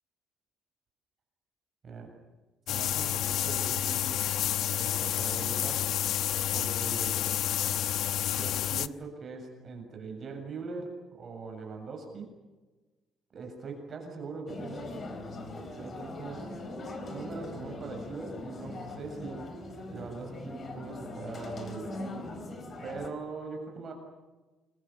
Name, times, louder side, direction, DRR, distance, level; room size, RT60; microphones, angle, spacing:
voice 1, 1.8-2.1 2.7-4.2 4.8-5.9 6.5-7.2 8.3-12.3 13.3-15.0 15.7-16.7 17.1-19.5 19.9-22.0 22.8-23.9, right 4 dB, 35° right, 3 dB, 7.1 m, -41 dB
sound 1, 2.7-8.9, left 11 dB, 65° left, 0.9 m, -29 dB
sound 2, 14.5-23.1, left 2 dB, 30° left, 4.2 m, -41 dB
29.0 x 23.5 x 7.2 m, 1.2 s
cardioid pair, 170°, 0 cm